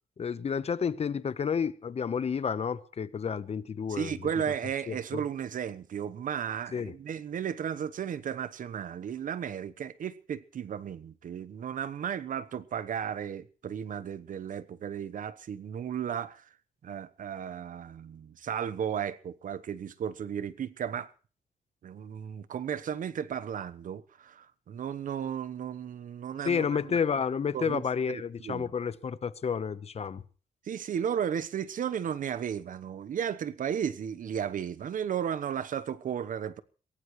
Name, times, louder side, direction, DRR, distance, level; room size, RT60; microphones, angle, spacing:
voice 1, 0.2-4.1 4.9-5.2 6.7-6.9 26.4-30.2, left 6 dB, 45° left, 1.0 m, -30 dB
voice 2, 3.9-16.4 16.8-21.1 21.8-27.0 27.5-27.8 28.1-28.7 30.6-36.6, right 8 dB, 65° right, 1.0 m, -34 dB
23.5 x 17.0 x 3.2 m
cardioid pair, 100°, 15 cm